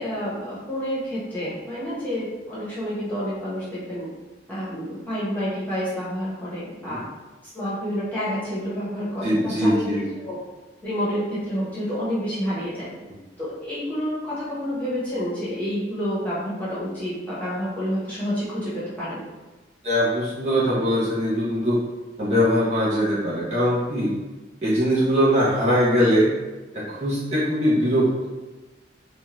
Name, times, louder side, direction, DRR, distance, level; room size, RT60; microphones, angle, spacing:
voice 1, 0.0-4.1 4.5-7.0 7.5-9.9 10.2-10.4 10.8-12.9 13.4-19.2, equal, 10° left, -10 dB, 0.9 m, -29 dB
voice 2, 9.2-10.0 19.8-21.8 22.2-24.1 24.6-26.3 26.7-28.3, equal, 35° right, -8 dB, 0.6 m, -21 dB
2.6 x 2.2 x 3.0 m, 1.2 s
head